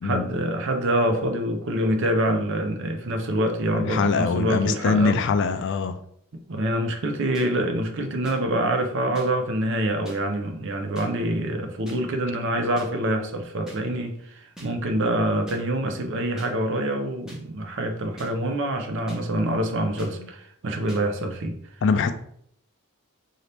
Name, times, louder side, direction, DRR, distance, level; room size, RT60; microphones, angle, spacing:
voice 1, 0.0-5.2 6.3-21.6, right 1 dB, 60° right, 5 dB, 0.6 m, -26 dB
voice 2, 3.7-6.0 21.8-22.1, left 4 dB, 55° left, 9 dB, 0.3 m, -23 dB
sound 1, 7.3-7.5 8.2-8.4 9.1-9.3 10.0-10.2 10.9-11.1 11.9-12.0 12.8-12.9 13.7-13.8 14.6-14.7 15.5-15.6 16.4-16.5 17.3-17.4 18.2-18.3 19.1-19.2 20.0-20.1 20.9-21.0, right 1 dB, 5° right, 1.0 m, -42 dB
3.9 x 2.8 x 3.3 m, 0.68 s
head